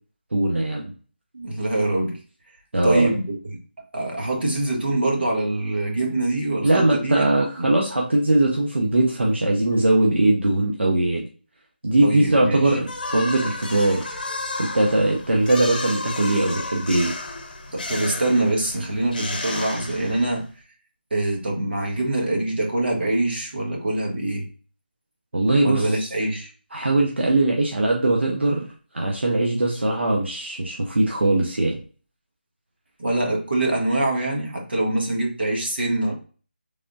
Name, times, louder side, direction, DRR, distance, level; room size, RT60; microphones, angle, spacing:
voice 1, 0.3-0.9 2.7-3.1 6.6-11.3 11.8-14.0 14.6-17.2 25.3-26.1 26.7-28.7 28.9-31.8, right 2 dB, 85° right, 0.8 m, -20 dB
voice 2, 1.3-2.2 2.8-3.4 3.9-7.7 12.0-12.7 17.7-20.5 21.1-24.5 25.6-26.5 33.0-36.1, right 2 dB, 70° right, 1.3 m, -24 dB
sound 1, 12.8-20.5, left 2 dB, 50° left, 0.8 m, -32 dB
3.6 x 3.4 x 2.6 m
figure-of-eight pair, 170°, 6 cm